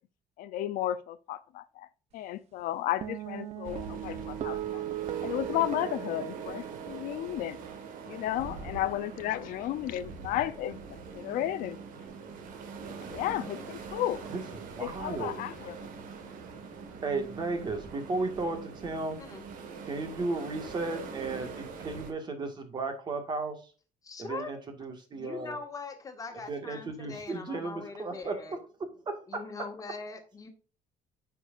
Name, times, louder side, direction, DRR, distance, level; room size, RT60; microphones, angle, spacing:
voice 1, 0.4-1.9 2.1-4.8 5.2-7.6 8.1-10.8 11.1-11.8 13.1-14.2 14.8-15.7, left 13 dB, 75° left, 0.6 m, -33 dB
sound 1, 3.0-9.6, right 12 dB, 50° right, 0.8 m, -39 dB
sound 2, 3.6-22.1, right 5 dB, 75° right, 1.7 m, -43 dB
voice 2, 14.3-15.4 17.0-19.2 19.8-23.7 24.2-25.6 26.5-28.6 29.1-29.4, right 3 dB, 30° right, 1.9 m, -35 dB
voice 3, 24.0-24.5 25.1-28.6 29.3-30.5, left 4 dB, 25° left, 1.8 m, -41 dB
9.2 x 6.1 x 2.5 m
cardioid pair, 145°, 14 cm